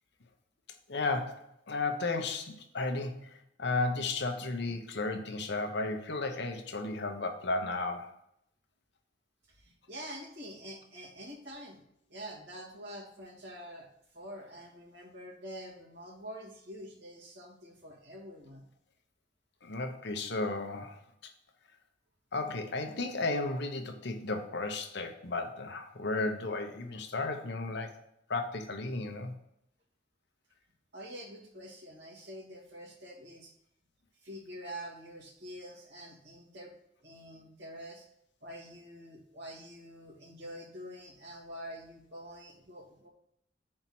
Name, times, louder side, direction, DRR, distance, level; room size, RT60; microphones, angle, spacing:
voice 1, 0.9-8.1 19.6-21.3 22.3-28.0 28.3-29.3, left 3 dB, 65° left, 5 dB, 0.9 m, -34 dB
voice 2, 9.5-11.8 12.1-18.7 30.9-33.5 34.1-36.7 37.0-38.1 38.4-43.1, equal, 65° right, -3 dB, 2.1 m, -46 dB
5.7 x 4.4 x 6.0 m, 0.76 s
head